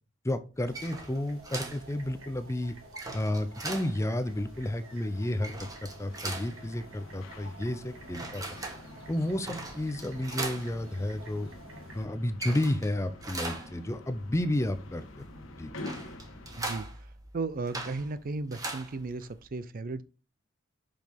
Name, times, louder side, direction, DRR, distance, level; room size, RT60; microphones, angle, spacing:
voice 1, 0.2-2.8 3.1-5.7 6.0-8.4 9.1-11.5 11.9-15.1 15.6-15.7, left 1 dB, 15° left, 0.5 m, -31 dB
sound 1, 0.6-19.5, right 2 dB, 20° right, 1.1 m, -42 dB
sound 2, 0.7-12.1, right 2 dB, 75° right, 1.7 m, -52 dB
sound 3, 2.7-16.6, left 2 dB, 75° left, 1.2 m, -48 dB
voice 2, 17.3-20.0, right 3 dB, 45° right, 0.5 m, -35 dB
5.9 x 5.1 x 3.5 m
head